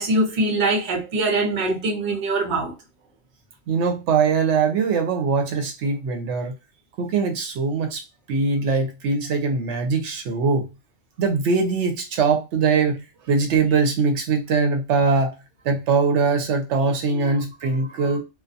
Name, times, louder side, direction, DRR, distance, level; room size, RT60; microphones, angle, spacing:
voice 1, 0.0-2.7 17.8-18.2, right 2 dB, 45° right, 0.8 m, -23 dB
voice 2, 3.7-6.5 7.0-8.0 8.3-10.7 11.2-15.4 15.6-18.2, right 4 dB, 80° right, 0.9 m, -22 dB
2.3 x 2.2 x 2.6 m
omnidirectional pair, 1.2 m